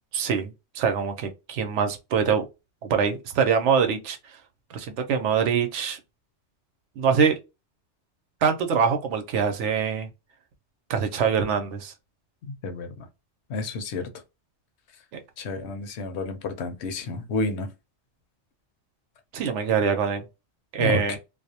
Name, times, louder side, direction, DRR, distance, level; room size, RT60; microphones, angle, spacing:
voice 1, 0.1-2.4 2.8-4.2 4.7-6.0 7.0-7.4 8.4-10.1 10.9-11.9 19.3-20.2 20.7-21.2, right 6 dB, 80° right, 0.9 m, -24 dB
voice 2, 12.5-13.1 13.5-14.1 15.4-17.7 20.8-21.2, left 3 dB, 70° left, 0.9 m, -30 dB
2.4 x 2.0 x 2.7 m
omnidirectional pair, 1.2 m